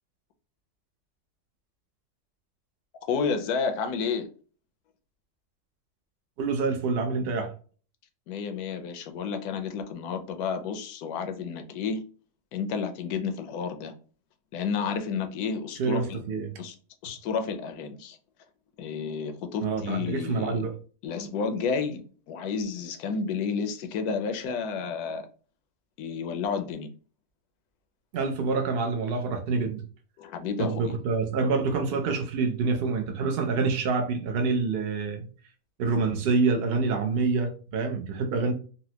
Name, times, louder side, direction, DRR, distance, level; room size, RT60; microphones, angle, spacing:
voice 1, 3.1-4.3 8.3-12.0 12.5-13.9 14.5-16.2 16.6-16.8 17.0-18.2 18.8-20.7 21.0-25.3 26.0-26.9 30.2-30.9, left 5 dB, 85° left, 1.1 m, -31 dB
voice 2, 6.4-7.5 15.8-16.6 19.6-20.7 28.1-29.8 30.6-35.3 35.8-38.5, right 4 dB, 65° right, 0.6 m, -27 dB
4.1 x 2.1 x 2.8 m
omnidirectional pair, 1.6 m